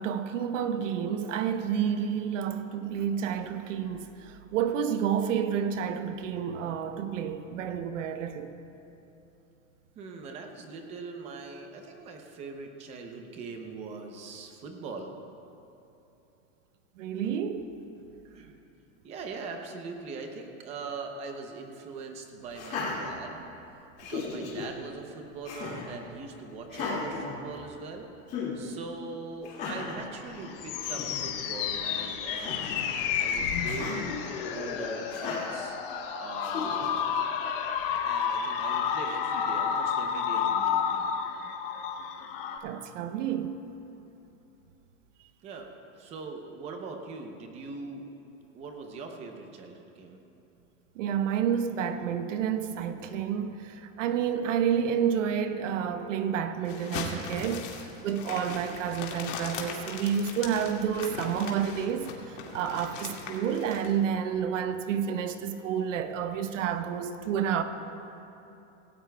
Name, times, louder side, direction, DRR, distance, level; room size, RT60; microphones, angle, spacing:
voice 1, 0.0-8.5 17.0-17.7 37.8-37.9 42.6-43.6 51.0-57.7 58.0-62.1 62.5-67.6, right 8 dB, 70° right, 0.9 m, -30 dB
voice 2, 10.0-15.2 18.2-18.6 19.0-23.4 24.1-28.1 28.5-32.7 33.2-34.1 34.5-35.8 36.2-37.1 38.0-41.1 45.4-48.0 48.5-50.2, right 4 dB, 15° right, 0.6 m, -41 dB
Laughter, 22.5-23.6 24.0-24.7 25.4-25.9 26.7-27.9 28.3-28.5 29.4-30.0 30.5-30.6 30.8-31.2 32.3-32.9 33.6-34.0 35.1-35.6 36.4-37.0, left 4 dB, 25° left, 2.2 m, -36 dB
sound 1, 30.2-42.6, left 7 dB, 45° left, 0.9 m, -31 dB
sound 2, 56.6-63.9, left 5 dB, 75° left, 2.1 m, -39 dB
17.5 x 17.0 x 2.3 m
supercardioid pair, 175°, 38 cm